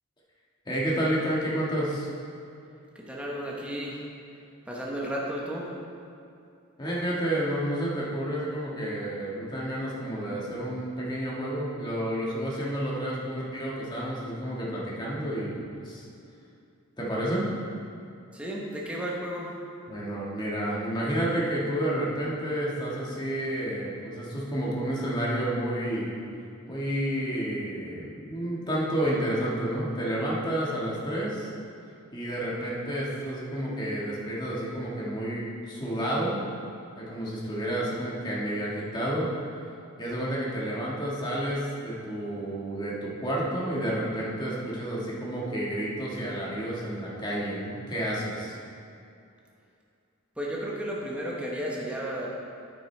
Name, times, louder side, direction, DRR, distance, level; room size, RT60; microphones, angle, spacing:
voice 1, 0.6-2.1 6.8-16.0 17.0-17.5 19.9-26.1 26.7-31.5 32.1-36.4 37.0-39.3 40.0-48.5, right 1 dB, 20° left, -5 dB, 1.6 m, -30 dB
voice 2, 2.9-4.0 4.7-5.7 18.3-19.5 50.4-52.3, equal, 5° right, -4 dB, 0.9 m, -33 dB
9.0 x 8.8 x 3.3 m, 2.5 s
head